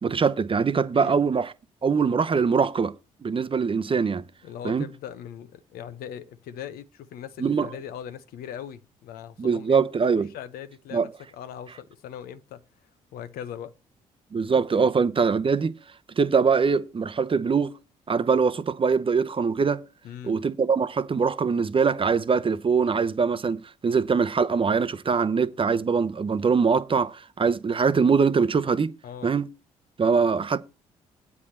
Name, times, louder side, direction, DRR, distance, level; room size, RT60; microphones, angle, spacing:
voice 1, 0.0-1.5 1.8-2.9 3.2-4.2 4.6-4.9 7.4-7.7 9.4-10.3 10.9-11.1 14.3-15.7 16.2-17.7 18.1-19.8 20.2-28.9 29.2-29.5 30.0-30.6, right 5 dB, 35° right, 0.8 m, -23 dB
voice 2, 4.4-9.8 10.2-12.6 13.1-13.7 20.0-20.4 29.0-29.3, left 9 dB, 75° left, 0.9 m, -40 dB
8.2 x 4.8 x 7.3 m
hypercardioid pair, 55°, 16 cm